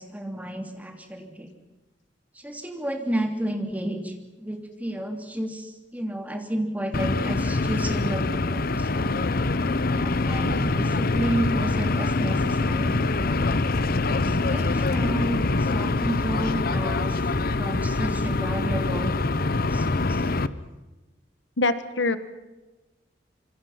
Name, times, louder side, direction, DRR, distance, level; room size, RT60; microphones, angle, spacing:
voice 1, 0.0-1.5 2.3-9.2 9.9-13.5 14.1-19.1 19.5-20.3, right 1 dB, 10° right, 5 dB, 3.0 m, -32 dB
sound 1, 6.9-20.5, left 3 dB, 55° left, 0.9 m, -24 dB
voice 2, 21.6-22.2, left 2 dB, 75° left, 12 dB, 1.4 m, -25 dB
26.5 x 24.0 x 5.8 m, 1.1 s
head